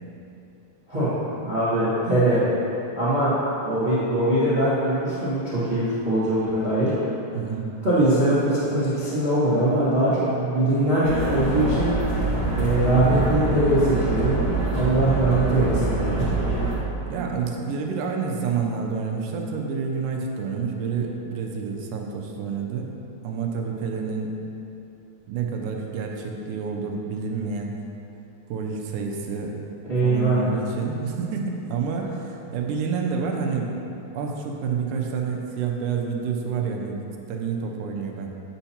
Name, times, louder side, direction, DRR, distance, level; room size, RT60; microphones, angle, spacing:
voice 1, 1.4-2.4 2.9-3.3 3.6-6.9 7.8-11.9 12.5-14.4 14.7-16.2 29.9-30.4, right 1 dB, 30° right, -11 dB, 1.0 m, -22 dB
voice 2, 7.3-7.7 17.1-22.9 23.2-24.4 25.3-27.7 28.5-29.6 30.0-33.7 34.1-38.3, right 5 dB, 85° right, 1 dB, 2.2 m, -28 dB
sound 1, 11.0-16.8, right 2 dB, 45° right, 2.3 m, -25 dB
9.0 x 5.7 x 2.8 m, 2.9 s
omnidirectional pair, 3.6 m